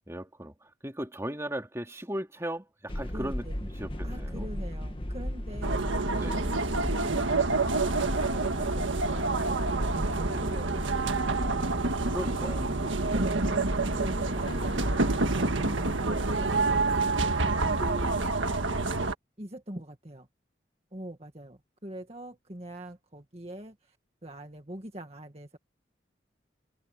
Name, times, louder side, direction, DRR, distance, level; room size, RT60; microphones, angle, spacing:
voice 1, 0.1-4.5 6.1-6.5 12.1-12.7, right 1 dB, 15° right, 2.8 m, -37 dB
sound 1, 2.9-18.3, equal, 25° left, 1.6 m, -37 dB
voice 2, 3.1-3.6 4.0-6.4 6.7-7.4 7.7-11.7 12.8-13.6 13.9-16.7 17.2-18.6 19.4-20.3 20.9-24.0 24.2-25.6, right 1 dB, 30° right, 2.0 m, -43 dB
sound 2, 5.6-19.1, right 3 dB, 90° right, 1.7 m, -28 dB
head